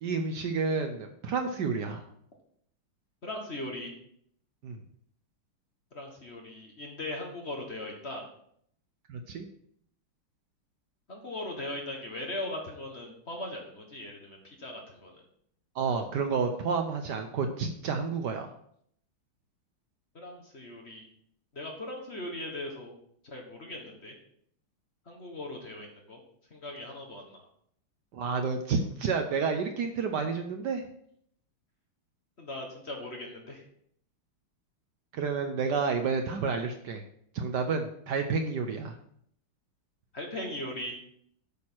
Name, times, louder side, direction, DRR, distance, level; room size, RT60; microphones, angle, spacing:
voice 1, 0.0-2.1 4.6-4.8 9.1-9.5 15.7-18.5 28.1-30.8 35.1-37.0 37.3-38.9, right 5 dB, 65° right, 6 dB, 1.2 m, -30 dB
voice 2, 3.2-3.9 5.9-8.3 11.1-15.1 20.1-21.0 21.5-23.0 23.2-24.1 25.1-26.2 26.5-27.4 32.4-33.6 40.1-41.0, left 1 dB, 35° left, 1 dB, 1.4 m, -39 dB
8.6 x 6.2 x 4.6 m, 0.68 s
omnidirectional pair, 2.3 m